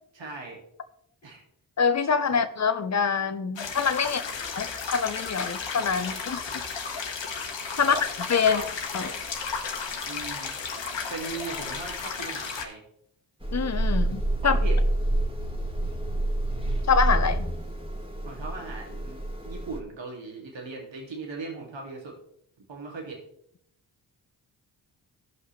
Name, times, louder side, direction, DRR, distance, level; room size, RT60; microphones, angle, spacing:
voice 1, 0.1-0.6 1.2-1.4 2.3-2.4 4.0-4.6 6.5-6.7 7.8-8.0 8.4-8.8 10.0-10.5 11.1-12.8 14.4-14.8 18.2-22.1 22.6-23.2, right 3 dB, 70° right, 0 dB, 2.5 m, -39 dB
voice 2, 1.8-4.2 4.5-6.5 7.8-8.6 8.9-9.1 13.5-14.6 16.9-17.5, left 6 dB, 35° left, 9 dB, 0.9 m, -25 dB
sound 1, 3.6-12.6, left 5 dB, 75° left, 1.4 m, -34 dB
sound 2, 13.4-19.8, right 1 dB, 10° right, 2.0 m, -27 dB
15.0 x 5.5 x 3.2 m, 0.73 s
cardioid pair, 50°, 46 cm